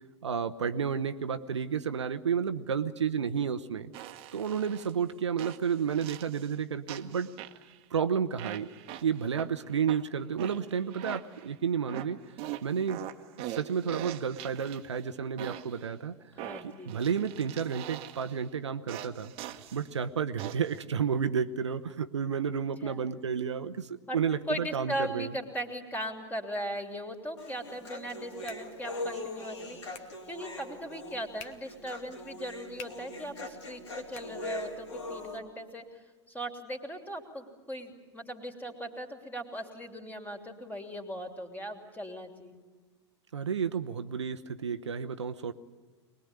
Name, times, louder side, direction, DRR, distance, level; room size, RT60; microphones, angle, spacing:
voice 1, 0.2-3.9 4.3-7.3 7.9-8.7 9.0-12.2 12.6-13.0 13.5-16.2 16.6-19.3 19.7-25.3 43.3-45.5, right 7 dB, 75° right, 9 dB, 0.9 m, -31 dB
sound 1, 3.9-4.9 5.4-6.5 6.9-7.8 8.4-9.5 9.9-11.5 11.9-15.0 15.4-15.9 16.4-18.4 18.9-19.9 20.4-20.8, right 13 dB, 40° right, 1.3 m, -42 dB
voice 2, 16.3-17.0 22.8-23.0 24.1-24.2 24.5-29.8 30.3-42.6, equal, 10° left, 4 dB, 3.2 m, -38 dB
Human voice, 27.4-35.4, left 2 dB, 75° left, 4.1 m, -41 dB
sound 2, 27.9-35.0, left 7 dB, 45° left, 1.6 m, -55 dB
24.0 x 20.5 x 9.9 m, 1.3 s
figure-of-eight pair, 90°, 15 cm